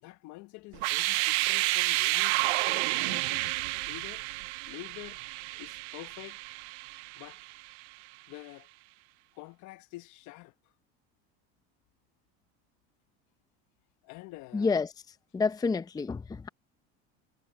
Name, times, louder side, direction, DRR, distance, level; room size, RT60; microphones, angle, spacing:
voice 1, 0.0-3.6 3.9-4.2 4.6-5.2 5.6-6.4 7.2-7.4 8.3-8.7 9.3-10.5 14.0-14.8, left 20 dB, 60° left, 1.2 m, -47 dB
sound 1, 0.7-7.6, right 23 dB, 80° right, 0.6 m, -30 dB
voice 2, 14.5-14.9 15.3-16.5, left 4 dB, 10° left, 0.6 m, -28 dB
supercardioid pair, 110°, 33 cm